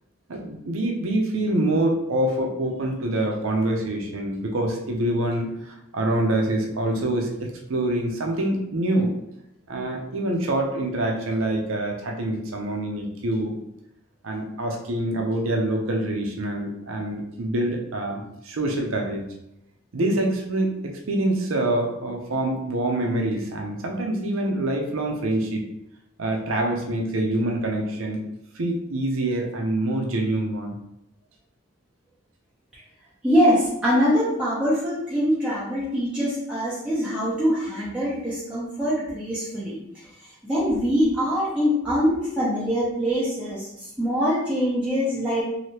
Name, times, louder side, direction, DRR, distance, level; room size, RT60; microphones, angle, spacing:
voice 1, 0.3-9.1 9.7-13.5 14.2-19.3 19.9-25.6 26.2-28.2 28.5-30.8, right 1 dB, 75° right, 2 dB, 0.6 m, -25 dB
voice 2, 33.2-39.8 40.4-43.7 44.0-45.4, equal, 5° right, -9 dB, 0.7 m, -23 dB
3.2 x 2.8 x 2.8 m, 0.83 s
head